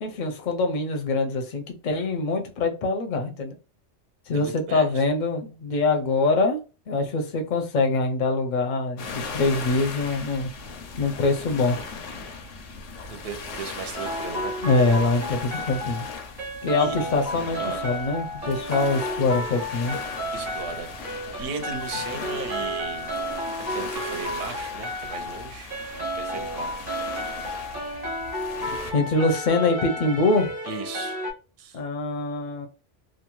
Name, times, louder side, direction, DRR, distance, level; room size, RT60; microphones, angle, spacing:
voice 1, 0.0-3.6 4.3-6.6 6.9-10.5 11.0-11.8 14.6-16.0 16.6-20.0 28.6-30.5 31.7-32.7, left 3 dB, 55° left, 0.6 m, -24 dB
voice 2, 4.3-5.0 13.1-14.5 16.8-17.0 17.6-17.8 20.3-23.1 23.7-25.7 26.1-26.7 30.6-31.2 31.6-31.8, right 5 dB, 60° right, 0.7 m, -36 dB
sound 1, 9.0-28.9, left 4 dB, 85° left, 1.0 m, -38 dB
sound 2, 13.9-31.3, equal, 25° right, 0.8 m, -32 dB
2.6 x 2.1 x 2.9 m
omnidirectional pair, 1.2 m